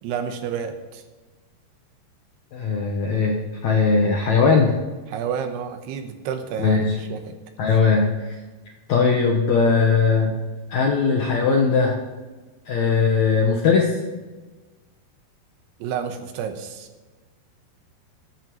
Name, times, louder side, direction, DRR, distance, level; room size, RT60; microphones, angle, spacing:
voice 1, 0.0-1.0 5.1-7.2 15.8-16.9, right 7 dB, 85° right, 6 dB, 3.1 m, -30 dB
voice 2, 2.5-4.8 6.6-7.0 7.6-8.3 8.9-10.3 10.7-12.0 12.7-13.9, left 5 dB, 75° left, 0 dB, 1.6 m, -19 dB
21.0 x 8.8 x 3.0 m, 1.3 s
omnidirectional pair, 4.7 m